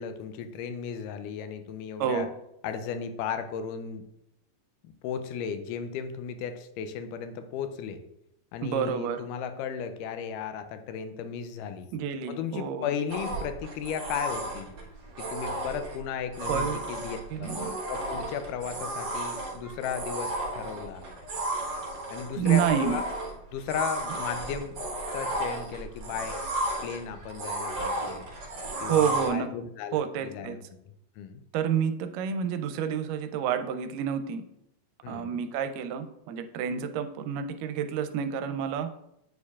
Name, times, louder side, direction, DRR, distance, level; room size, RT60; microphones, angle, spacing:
voice 1, 0.0-2.3 2.6-4.0 4.8-8.0 8.5-11.9 12.3-14.8 15.2-17.6 17.9-21.1 22.1-23.1 23.5-24.8 25.1-26.4 26.8-28.3 28.8-30.6 31.2-31.4 35.0-35.4, left 7 dB, 80° left, 9 dB, 2.0 m, -35 dB
voice 2, 2.0-2.3 8.6-9.3 11.9-12.9 16.5-16.8 17.3-17.8 22.4-23.0 28.6-29.5 29.9-30.6 31.5-34.4 35.1-38.9, right 8 dB, 85° right, 8 dB, 2.1 m, -29 dB
sound 1, 13.1-29.3, right 1 dB, 55° right, 1.4 m, -34 dB
9.4 x 4.5 x 2.4 m, 0.79 s
omnidirectional pair, 3.9 m